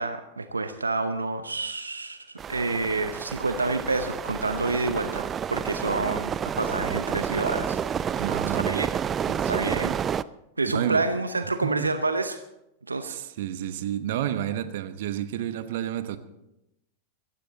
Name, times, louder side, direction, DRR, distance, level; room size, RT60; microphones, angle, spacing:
voice 1, 0.0-7.8 8.1-8.3 8.5-8.9 9.5-10.0 10.6-12.4 12.9-13.2, right 3 dB, 90° right, 0.7 m, -28 dB
sound 1, 2.4-10.2, right 8 dB, 25° right, 0.4 m, -30 dB
voice 2, 8.2-8.8 9.3-9.9 10.6-11.1 11.6-11.9 13.0-16.2, right 11 dB, 60° right, 1.0 m, -30 dB
16.0 x 15.0 x 4.0 m
figure-of-eight pair, 95°, 0 cm